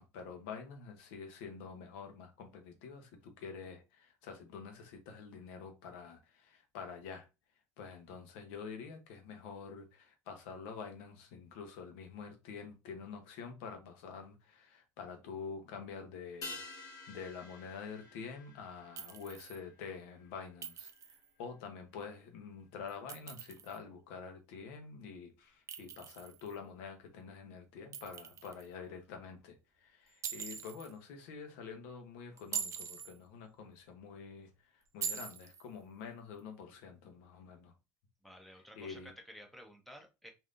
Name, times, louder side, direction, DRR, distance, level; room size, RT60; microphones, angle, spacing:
voice 1, 0.0-7.3 7.8-37.7 38.8-39.1, left 5 dB, 85° left, 0.8 m, -47 dB
sound 1, 16.4-21.1 21.4-21.5, left 3 dB, 50° left, 1.2 m, -50 dB
Chink clink, 19.0-19.6 20.6-21.3 22.9-23.8 25.7-26.6 27.9-28.7 30.2-30.9 32.4-33.1 35.0-35.7, right 7 dB, 40° right, 0.5 m, -42 dB
voice 2, 38.2-40.3, equal, ahead, 0.8 m, -53 dB
3.3 x 2.7 x 2.5 m
supercardioid pair, 100°, 8 cm